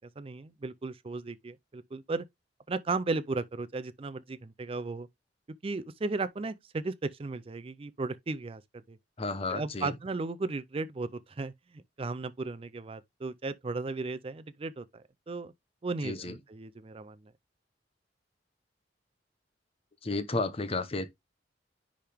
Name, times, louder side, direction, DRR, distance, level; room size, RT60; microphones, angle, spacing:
voice 1, 0.2-2.3 2.7-5.1 5.6-8.6 8.9-9.0 9.5-11.5 12.0-15.5 15.8-17.2, right 3 dB, 30° right, 0.4 m, -35 dB
voice 2, 9.2-9.9 16.0-16.3 20.0-21.1, left 3 dB, 30° left, 0.8 m, -32 dB
10.0 x 3.5 x 3.4 m
head